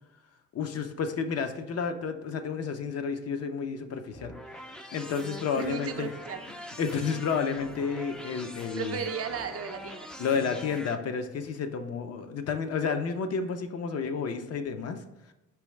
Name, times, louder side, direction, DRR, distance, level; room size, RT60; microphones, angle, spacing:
voice 1, 0.5-4.3 4.9-6.1 6.5-9.0 10.2-15.0, left 5 dB, 55° left, 7 dB, 0.6 m, -31 dB
sound 1, 4.1-10.9, equal, 5° left, 0.4 m, -43 dB
voice 2, 5.5-6.4 8.8-10.1, right 6 dB, 50° right, 6 dB, 0.5 m, -35 dB
4.6 x 3.0 x 3.1 m, 0.99 s
cardioid pair, 90°, 30 cm